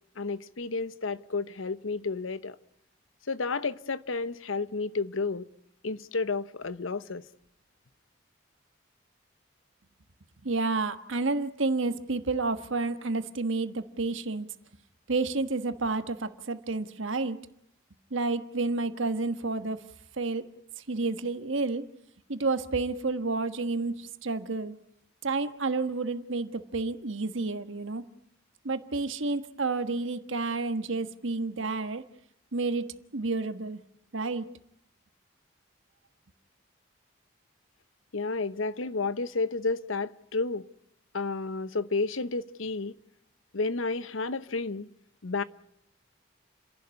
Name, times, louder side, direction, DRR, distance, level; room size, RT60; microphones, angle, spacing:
voice 1, 0.2-2.6 3.3-5.5 5.8-7.2 38.1-40.6 41.1-42.9 43.5-44.9 45.2-45.4, left 3 dB, 85° left, 0.9 m, -31 dB
voice 2, 10.4-14.5 15.1-17.4 18.1-19.8 20.2-20.4 20.9-21.8 22.3-24.7 25.2-28.0 28.6-32.0 32.5-32.9 33.1-33.8 34.1-34.5, right 3 dB, 80° right, 1.4 m, -30 dB
30.0 x 11.5 x 9.6 m
head